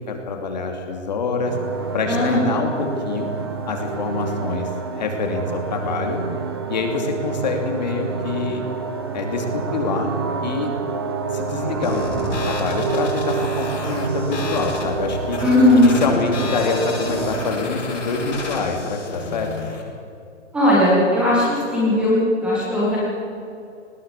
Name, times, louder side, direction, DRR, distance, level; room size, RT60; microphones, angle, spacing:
voice 1, 0.0-1.6 1.9-3.3 3.7-4.7 4.9-6.2 6.7-8.6 9.1-10.1 10.4-10.7 11.3-15.4 15.8-19.5, left 4 dB, 35° left, 3 dB, 2.7 m, -25 dB
sound 1, 1.5-17.6, right 5 dB, 20° right, 0.9 m, -28 dB
voice 2, 2.1-2.5 15.4-15.9 20.5-21.4 21.7-23.0, left 1 dB, 5° right, -7 dB, 1.7 m, -17 dB
sound 2, 11.8-19.8, left 4 dB, 70° left, 7.4 m, -31 dB
19.5 x 16.5 x 8.4 m, 2.5 s
hypercardioid pair, 175°, 37 cm